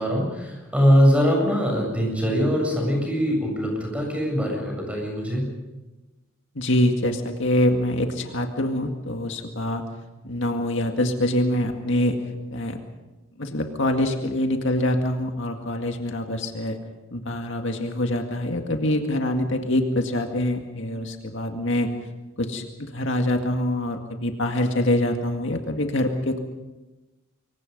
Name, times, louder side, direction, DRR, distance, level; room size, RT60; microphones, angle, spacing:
voice 1, 0.0-5.5, equal, 5° right, 1 dB, 7.4 m, -22 dB
voice 2, 6.6-9.8 10.2-12.2 12.5-12.8 13.4-16.8 17.1-21.9 22.4-26.4, left 1 dB, 60° left, 4 dB, 2.1 m, -25 dB
26.5 x 23.5 x 5.4 m, 1.1 s
head